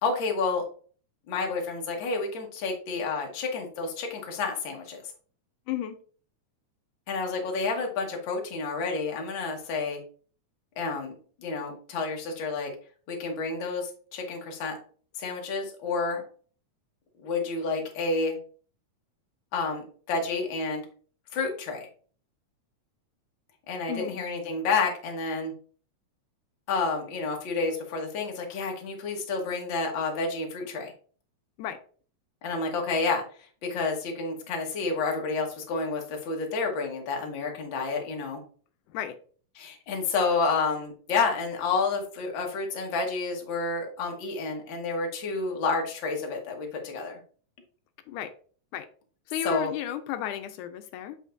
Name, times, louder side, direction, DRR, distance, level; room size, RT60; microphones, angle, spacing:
voice 1, 0.0-0.6 1.3-5.0 7.1-10.0 10.8-11.1 11.4-12.7 13.1-14.8 15.2-16.2 17.2-18.4 19.5-20.8 21.3-21.9 23.7-25.5 26.7-30.9 32.4-33.2 33.6-38.4 39.5-47.2 49.4-49.7, left 4 dB, 50° left, 1 dB, 1.7 m, -30 dB
voice 2, 49.3-51.2, left 10 dB, 85° left, 9 dB, 2.1 m, -33 dB
7.5 x 5.6 x 2.6 m, 0.43 s
omnidirectional pair, 3.5 m